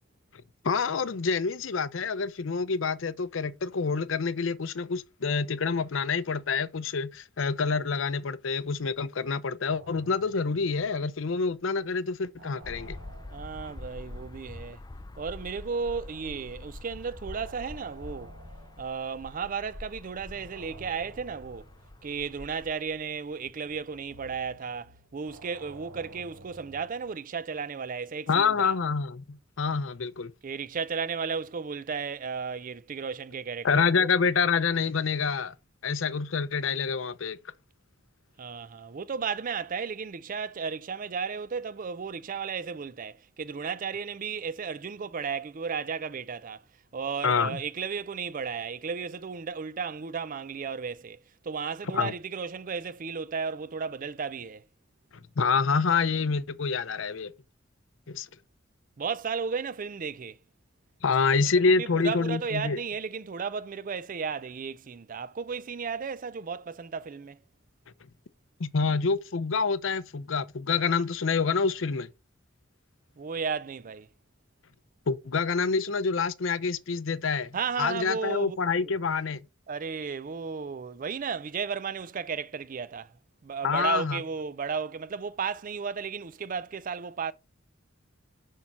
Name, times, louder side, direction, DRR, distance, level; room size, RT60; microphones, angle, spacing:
voice 1, 0.6-13.0 28.3-30.3 33.6-35.5 35.8-37.4 47.2-47.6 51.9-52.1 55.4-57.3 58.1-58.3 61.0-62.8 68.6-72.1 75.1-79.4 83.6-84.2, left 5 dB, 75° left, 0.6 m, -27 dB
sound 1, 9.7-11.5 11.8-19.8 20.3-27.2, right 2 dB, 75° right, 1.4 m, -53 dB
sound 2, 12.6-22.7, left 2 dB, 20° left, 0.5 m, -45 dB
voice 2, 13.3-14.8 15.2-18.3 18.8-21.7 22.0-28.7 30.4-34.1 38.4-46.6 46.9-54.6 59.0-60.4 61.4-67.4 73.2-74.1 77.5-78.6 78.8-78.9 79.7-83.1 83.4-87.3, right 5 dB, 45° right, 0.5 m, -34 dB
6.4 x 5.7 x 4.2 m
head